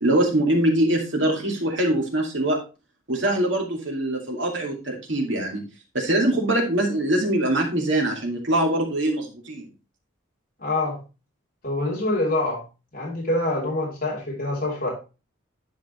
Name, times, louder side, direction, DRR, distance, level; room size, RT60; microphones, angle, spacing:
voice 1, 0.0-2.6 3.1-5.6 5.9-9.7, right 1 dB, 65° right, 1 dB, 2.2 m, -23 dB
voice 2, 10.6-11.0 11.6-12.6 12.9-14.9, left 2 dB, 45° left, -5 dB, 3.3 m, -25 dB
10.5 x 5.1 x 3.2 m, 0.30 s
head